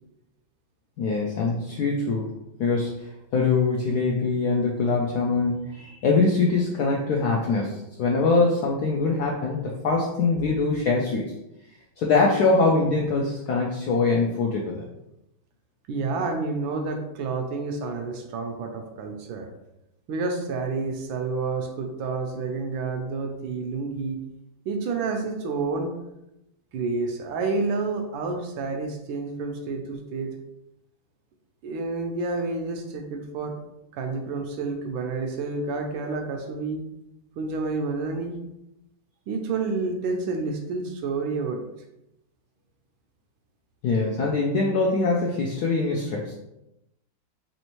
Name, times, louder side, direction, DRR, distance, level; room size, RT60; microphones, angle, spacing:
voice 1, 1.0-2.3 2.6-3.1 3.3-11.3 12.0-14.8 43.8-46.3, left 3 dB, 80° left, -1 dB, 0.9 m, -23 dB
voice 2, 15.9-19.5 20.1-24.2 24.7-26.0 26.7-30.3 31.6-33.6 33.9-36.8 37.4-38.4 39.3-41.6, right 3 dB, 80° right, 4 dB, 1.3 m, -29 dB
4.3 x 3.0 x 3.0 m, 0.89 s
omnidirectional pair, 2.2 m